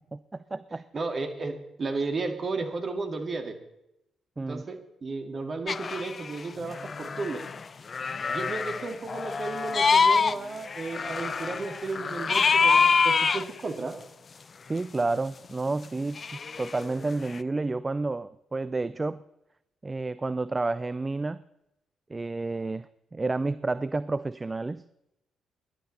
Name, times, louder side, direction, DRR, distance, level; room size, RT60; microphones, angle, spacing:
voice 1, 0.1-0.8 4.4-4.6 14.6-16.2 16.6-19.2 19.8-21.4 22.1-24.8, right 3 dB, 25° right, 16 dB, 0.5 m, -30 dB
voice 2, 0.9-3.6 4.5-7.5 8.3-14.0, right 3 dB, 40° right, 5 dB, 2.1 m, -33 dB
sound 1, 5.7-6.4 6.6-7.6 7.9-10.3 10.6-13.4 16.2-17.4, left 5 dB, 40° left, 0.4 m, -25 dB
18.5 x 11.5 x 4.1 m, 0.84 s
figure-of-eight pair, 40°, 0 cm